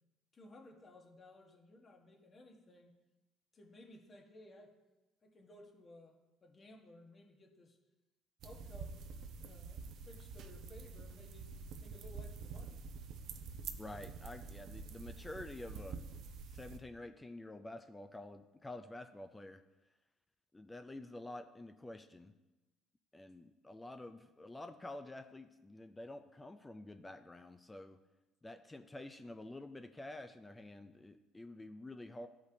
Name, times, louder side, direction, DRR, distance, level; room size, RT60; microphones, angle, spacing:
voice 1, 0.3-3.0 3.5-4.8 5.2-7.8 8.4-9.0 9.4-11.5 11.8-12.8, left 1 dB, 35° left, 2 dB, 1.4 m, -58 dB
sound 1, 8.4-16.8, right 5 dB, 65° right, 0.6 m, -47 dB
voice 2, 13.8-16.0 16.5-19.6 20.5-22.3 23.1-28.0 28.4-32.3, left 2 dB, 15° left, 8 dB, 0.5 m, -49 dB
12.5 x 5.1 x 2.8 m, 1.1 s
supercardioid pair, 75°, 0 cm